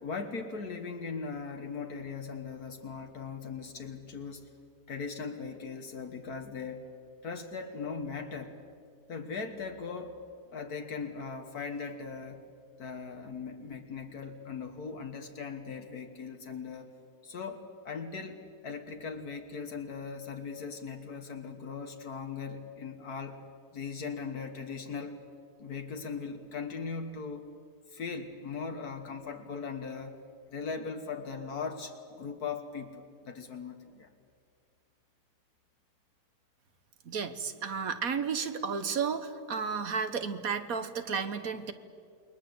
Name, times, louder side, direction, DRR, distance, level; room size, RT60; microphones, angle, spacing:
voice 1, 0.0-4.5 4.9-6.9 7.2-8.6 9.1-10.2 10.5-12.4 12.8-16.9 17.2-23.4 23.7-25.3 25.6-27.5 27.9-30.2 30.5-34.1, left 5 dB, 75° left, 5 dB, 1.9 m, -39 dB
voice 2, 37.0-41.7, right 6 dB, 65° right, 10 dB, 1.7 m, -33 dB
28.5 x 21.5 x 8.0 m, 2.3 s
omnidirectional pair, 1.7 m